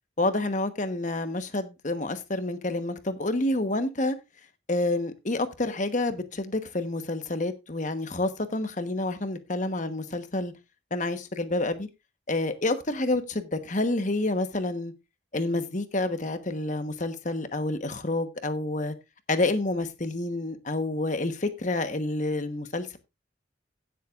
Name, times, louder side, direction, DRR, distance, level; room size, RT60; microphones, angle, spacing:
voice 1, 0.2-4.2 4.7-10.5 10.9-11.9 12.3-14.9 15.3-18.9 19.3-23.0, left 2 dB, 40° left, 1.2 m, -28 dB
16.5 x 7.6 x 2.5 m
head